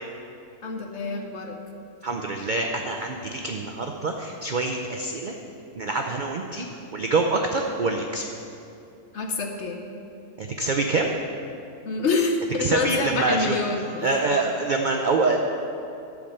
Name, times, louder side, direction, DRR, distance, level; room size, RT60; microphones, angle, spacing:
voice 1, 0.6-1.6 9.1-9.8 11.8-14.2, left 3 dB, 55° left, 3 dB, 1.0 m, -26 dB
voice 2, 2.0-5.3 5.7-6.7 6.9-8.3 10.4-11.1 12.6-13.6 14.0-15.4, right 3 dB, 85° right, 2 dB, 0.4 m, -25 dB
12.0 x 4.9 x 6.6 m, 2.7 s
omnidirectional pair, 1.6 m